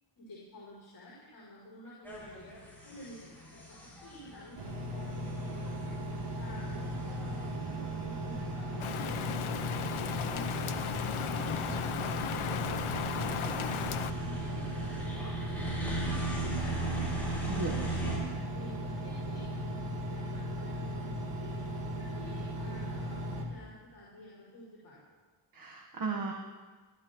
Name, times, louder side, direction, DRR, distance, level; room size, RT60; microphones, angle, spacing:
voice 1, 0.2-2.5 2.8-9.9 10.2-13.0 13.3-13.9 14.2-15.8 16.1-21.5 22.0-25.0, left 1 dB, 50° left, -6 dB, 5.9 m, -51 dB
sound 1, 2.0-18.2, right 2 dB, 5° left, 6.2 m, -40 dB
Engine, 4.6-23.4, equal, 90° right, 3.1 m, -37 dB
Rain, 8.8-14.1, left 8 dB, 85° left, 0.8 m, -36 dB
voice 2, 17.5-18.1 25.5-26.3, right 4 dB, 45° right, 0 dB, 1.4 m, -36 dB
28.5 x 12.5 x 3.1 m, 1.3 s
wide cardioid pair, 155°, 48 cm